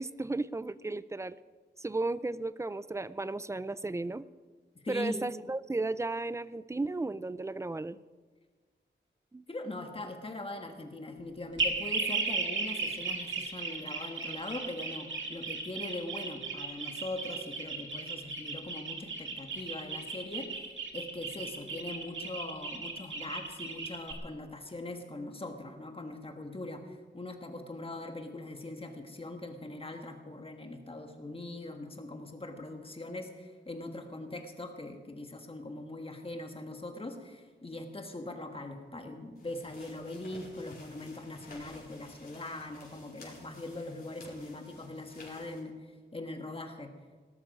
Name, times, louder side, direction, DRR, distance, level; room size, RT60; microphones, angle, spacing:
voice 1, 0.0-1.4 1.8-4.3 4.9-8.0 9.3-9.4, right 2 dB, 15° right, 16 dB, 0.4 m, -34 dB
voice 2, 4.8-5.2 9.5-46.9, left 2 dB, 30° left, 4 dB, 1.6 m, -41 dB
sound 1, 11.6-24.1, right 4 dB, 80° right, 2.1 m, -36 dB
sound 2, 39.3-45.6, left 2 dB, 55° left, 4.7 m, -53 dB
18.0 x 13.0 x 5.3 m, 1.4 s
wide cardioid pair, 145°, 20 cm